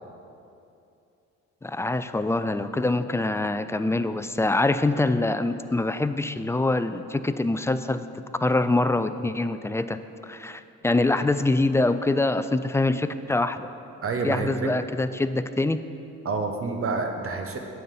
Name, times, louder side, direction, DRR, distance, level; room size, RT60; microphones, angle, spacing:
voice 1, 1.6-8.0 8.4-13.7 14.2-15.8, left 2 dB, 10° left, 11 dB, 0.3 m, -25 dB
voice 2, 14.0-14.7 16.2-17.6, right 4 dB, 45° right, 4 dB, 1.2 m, -28 dB
9.3 x 5.6 x 7.7 m, 2.7 s
cardioid pair, 90°, 30 cm